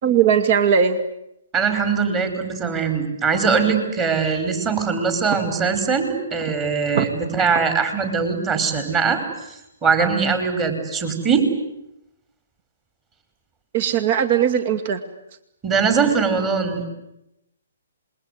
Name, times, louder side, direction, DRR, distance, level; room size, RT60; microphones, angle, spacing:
voice 1, 0.0-1.0 6.9-7.1 13.7-15.0, right 8 dB, 50° right, 11 dB, 2.3 m, -18 dB
voice 2, 1.5-9.2 9.5-11.5 15.6-16.9, right 5 dB, 25° right, 8 dB, 5.4 m, -21 dB
27.0 x 22.0 x 9.6 m, 0.83 s
hypercardioid pair, 135°, 0 cm